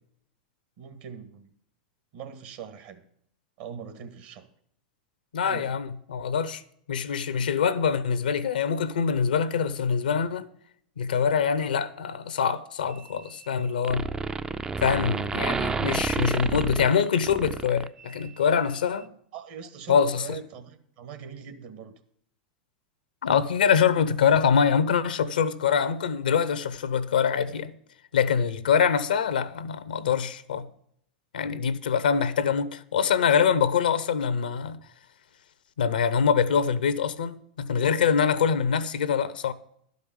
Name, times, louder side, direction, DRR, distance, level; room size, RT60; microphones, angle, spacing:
voice 1, 0.8-1.5 2.1-3.0 3.6-4.5 5.4-5.8 19.3-21.9, right 7 dB, 60° right, 1.7 m, -41 dB
voice 2, 5.3-6.6 6.9-10.5 11.0-14.1 14.8-19.1 19.9-20.4 23.2-27.7 28.1-30.6 31.3-34.8 35.8-39.5, left 7 dB, 80° left, 0.8 m, -24 dB
sound 1, 12.9-13.6 13.8-18.3, right 4 dB, 15° right, 0.4 m, -30 dB
12.0 x 5.4 x 8.5 m
hypercardioid pair, 100°, 5 cm